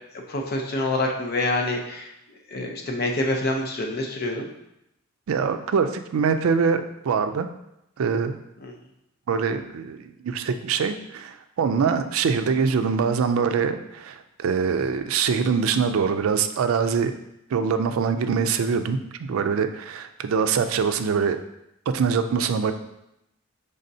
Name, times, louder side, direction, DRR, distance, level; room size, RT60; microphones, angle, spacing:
voice 1, 0.1-4.5 8.6-8.7, left 2 dB, 50° left, 1 dB, 0.6 m, -27 dB
voice 2, 5.3-7.5 8.0-8.4 9.3-17.1 17.5-19.0 19.3-21.4 21.9-22.7, right 6 dB, 85° right, 9 dB, 0.4 m, -23 dB
5.3 x 3.5 x 2.7 m, 0.84 s
head